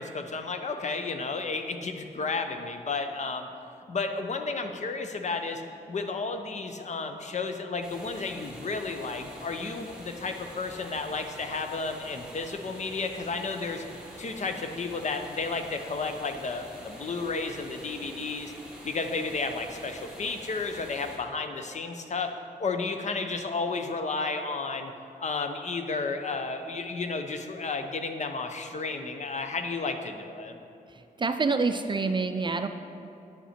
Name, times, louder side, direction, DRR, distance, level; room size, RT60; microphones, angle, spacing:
voice 1, 0.0-3.5 3.9-5.6 5.9-13.8 14.2-18.5 18.8-22.3 22.6-24.9 25.2-30.6, left 4 dB, 45° left, 6 dB, 0.6 m, -32 dB
sound 1, 7.8-21.2, equal, 5° right, 1.8 m, -46 dB
voice 2, 30.9-32.7, right 4 dB, 30° right, 8 dB, 0.4 m, -27 dB
9.7 x 5.6 x 4.3 m, 2.7 s
cardioid pair, 85°, 16 cm